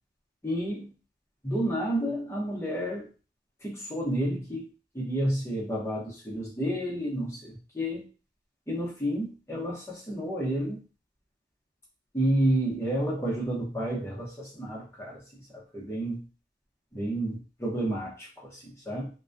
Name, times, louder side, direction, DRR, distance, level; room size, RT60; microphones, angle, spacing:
voice 1, 0.4-0.9 1.4-3.1 3.6-4.7 4.9-8.0 8.7-10.8 12.1-15.2 15.7-16.2 16.9-19.1, right 1 dB, 15° left, -5 dB, 0.7 m, -30 dB
2.2 x 2.2 x 2.5 m, 0.34 s
head